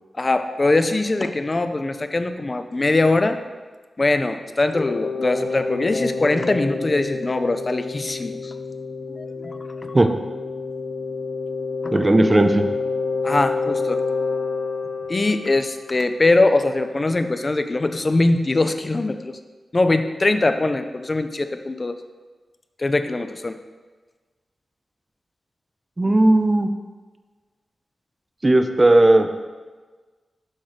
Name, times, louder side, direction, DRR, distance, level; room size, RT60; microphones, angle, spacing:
voice 1, 0.2-3.4 4.0-8.5 9.1-9.9 11.8-12.0 13.2-14.0 15.1-19.4 19.7-22.0 22.8-23.6, left 2 dB, 30° left, 9 dB, 0.5 m, -22 dB
sound 1, 4.7-16.4, left 4 dB, 50° left, 0.9 m, -28 dB
voice 2, 11.9-12.7 26.0-26.7 28.4-29.5, right 1 dB, 25° right, 7 dB, 0.5 m, -16 dB
6.4 x 5.9 x 5.0 m, 1.4 s
wide cardioid pair, 90°, 0 cm